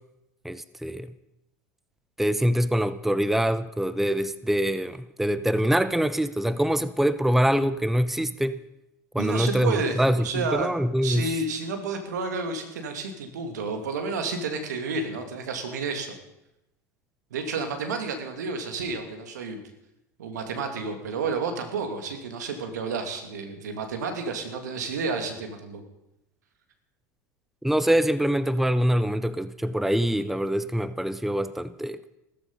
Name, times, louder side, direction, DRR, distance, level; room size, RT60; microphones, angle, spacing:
voice 1, 0.4-1.1 2.2-8.6 9.1-11.3 27.6-32.0, equal, 5° right, 0.8 m, -24 dB
voice 2, 9.2-10.7 11.0-16.1 17.3-19.6 20.2-25.8, right 4 dB, 85° right, 2.6 m, -31 dB
15.5 x 14.0 x 5.6 m
hypercardioid pair, 85°, 9 cm